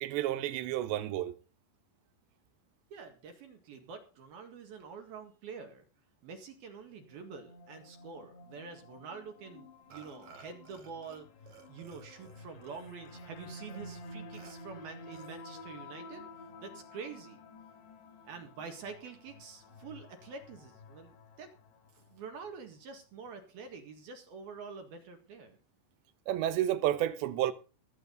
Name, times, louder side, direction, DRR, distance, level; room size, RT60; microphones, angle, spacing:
voice 1, 0.0-1.3 26.3-27.5, right 12 dB, 75° right, 2.9 m, -30 dB
voice 2, 2.9-5.8 6.2-11.3 11.7-16.2 16.6-17.4 18.2-21.5 21.9-25.6, right 5 dB, 60° right, 3.1 m, -47 dB
sound 1, 6.8-22.2, left 2 dB, 65° left, 3.7 m, -51 dB
Burping eructation, 9.9-11.2 11.5-13.3 13.7-13.8 14.3-14.5 15.1-15.7, right 5 dB, 45° right, 3.2 m, -56 dB
20.5 x 8.6 x 4.0 m
omnidirectional pair, 5.9 m